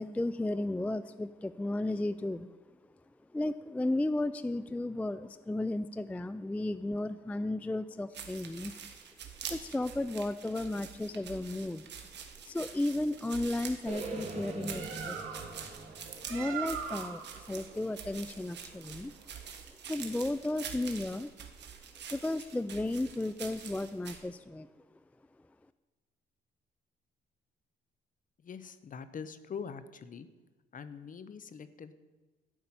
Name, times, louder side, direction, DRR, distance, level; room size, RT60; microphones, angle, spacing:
voice 1, 0.0-2.5 3.3-8.7 9.5-11.9 12.4-15.3 16.3-19.1 19.9-21.3 22.1-24.7, left 2 dB, 5° left, 14 dB, 0.3 m, -34 dB
sound 1, 8.1-24.2, right 7 dB, 60° right, 1.5 m, -46 dB
sound 2, 13.9-17.9, right 3 dB, 30° right, 2.3 m, -43 dB
Bird, 14.4-19.6, right 7 dB, 85° right, 1.4 m, -43 dB
voice 2, 28.4-30.3 30.7-31.9, left 6 dB, 40° left, 13 dB, 0.8 m, -43 dB
12.0 x 5.5 x 8.6 m, 1.2 s
cardioid pair, 90°, 20 cm